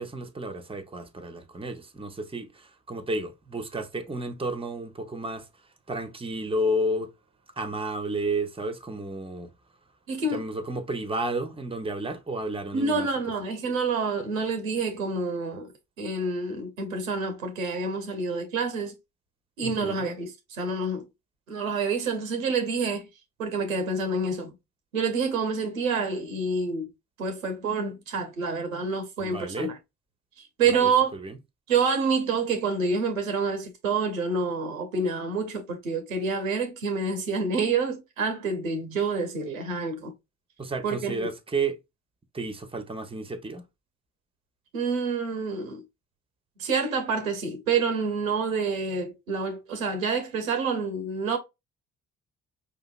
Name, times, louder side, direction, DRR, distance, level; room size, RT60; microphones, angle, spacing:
voice 1, 0.0-5.5 5.9-7.1 7.6-9.5 10.3-13.1 19.6-20.1 29.2-29.7 30.7-31.4 40.6-41.8 42.3-43.6, right 1 dB, 15° right, 0.8 m, -32 dB
voice 2, 10.1-10.4 12.7-15.7 16.0-19.0 19.6-21.1 21.5-23.1 23.4-24.6 24.9-26.9 27.2-29.7 30.4-31.1 31.7-40.1 40.8-41.3 44.7-45.8 46.6-51.4, right 4 dB, 90° right, 0.7 m, -28 dB
4.9 x 2.8 x 2.3 m
hypercardioid pair, 45°, 40 cm